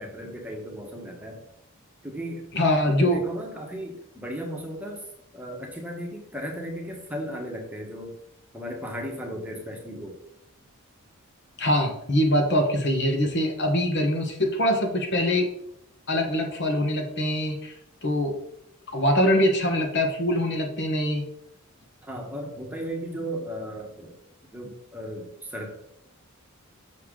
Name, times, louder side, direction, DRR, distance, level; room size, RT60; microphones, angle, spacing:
voice 1, 0.0-1.4 2.0-5.0 5.3-8.1 8.5-10.2 22.0-24.1 24.5-25.7, equal, 5° right, 0 dB, 1.1 m, -36 dB
voice 2, 2.5-3.2 11.6-15.5 16.1-17.7 18.0-18.4 18.9-21.2, left 1 dB, 50° left, 3 dB, 1.2 m, -23 dB
6.7 x 6.3 x 3.8 m, 0.77 s
head